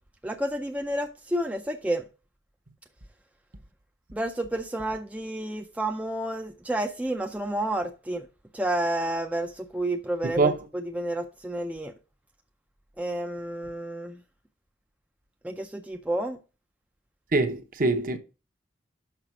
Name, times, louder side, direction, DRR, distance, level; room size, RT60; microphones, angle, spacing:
voice 1, 0.2-2.0 4.1-8.3 8.5-11.9 13.0-14.2 15.4-16.4, right 1 dB, 5° right, 0.4 m, -30 dB
voice 2, 17.3-18.2, right 3 dB, 45° right, 0.9 m, -23 dB
5.9 x 5.7 x 6.0 m
head